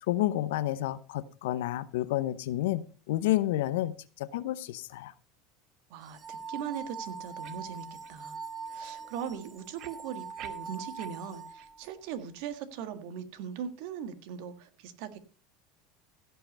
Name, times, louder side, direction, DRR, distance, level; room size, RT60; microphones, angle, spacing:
voice 1, 0.0-5.1, left 14 dB, 85° left, 15 dB, 0.7 m, -30 dB
voice 2, 5.9-8.4 8.7-15.2, right 8 dB, 70° right, 10 dB, 1.6 m, -40 dB
sound 1, 6.0-11.9, right 5 dB, 25° right, 0.6 m, -42 dB
sound 2, 7.4-7.6 8.0-8.2 8.6-8.7 9.8-11.1 11.6-11.7 12.2-12.3, right 11 dB, 55° right, 1.3 m, -48 dB
16.0 x 5.7 x 5.3 m, 0.38 s
supercardioid pair, 125°, 0 cm